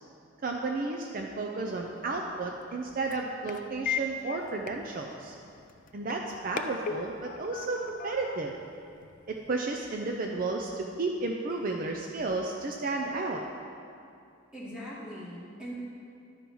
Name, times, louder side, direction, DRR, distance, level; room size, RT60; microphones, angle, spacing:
voice 1, 0.4-5.3 5.9-8.5 9.3-13.4, right 3 dB, 45° right, 1 dB, 0.5 m, -32 dB
sound 1, 1.7-9.5, left 5 dB, 40° left, 0.3 m, -40 dB
voice 2, 14.5-15.7, equal, 5° right, -7 dB, 1.9 m, -41 dB
11.5 x 4.5 x 5.4 m, 2.5 s
head